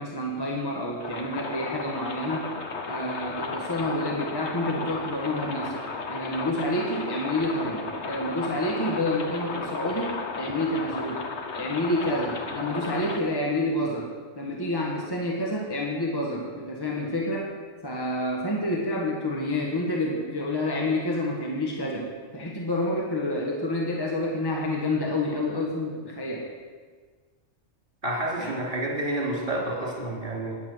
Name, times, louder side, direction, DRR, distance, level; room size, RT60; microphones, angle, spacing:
voice 1, 0.0-2.5 2.9-11.2 11.6-14.1 14.4-17.5 17.8-26.5 28.4-28.5, left 1 dB, 20° left, -1 dB, 1.4 m, -28 dB
sound 1, 1.0-13.2, left 4 dB, 65° left, 1.4 m, -34 dB
voice 2, 28.0-30.6, right 1 dB, 40° right, -4 dB, 3.3 m, -29 dB
12.0 x 10.0 x 6.2 m, 1.5 s
omnidirectional pair, 1.2 m